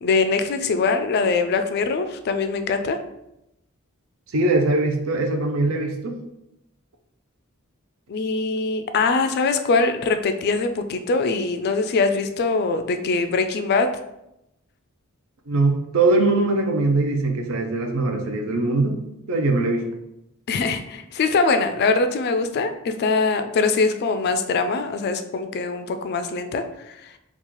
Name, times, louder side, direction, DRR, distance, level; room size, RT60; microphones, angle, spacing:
voice 1, 0.0-3.0 8.1-13.9 20.5-27.0, left 4 dB, 50° left, 8 dB, 0.3 m, -22 dB
voice 2, 4.3-6.2 15.5-19.0 19.3-19.9, right 2 dB, 70° right, 4 dB, 0.5 m, -21 dB
3.0 x 2.4 x 3.7 m, 0.85 s
head